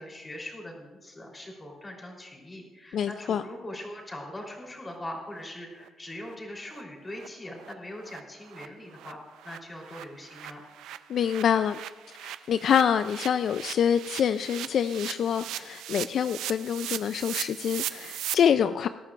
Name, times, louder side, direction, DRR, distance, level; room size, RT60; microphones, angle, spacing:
voice 1, 0.0-10.6, left 1 dB, 20° left, -1 dB, 3.5 m, -41 dB
voice 2, 2.9-3.4 11.1-11.8 12.2-18.9, left 8 dB, 65° left, 11 dB, 0.3 m, -26 dB
sound 1, 5.4-5.5 5.8-5.9 6.2-6.4 6.7-6.8 7.1-7.3 7.6-7.7 8.1-8.2 8.4-18.3, right 12 dB, 85° right, 0.4 m, -39 dB
20.0 x 12.0 x 2.5 m, 1.3 s
cardioid pair, 90°, 0 cm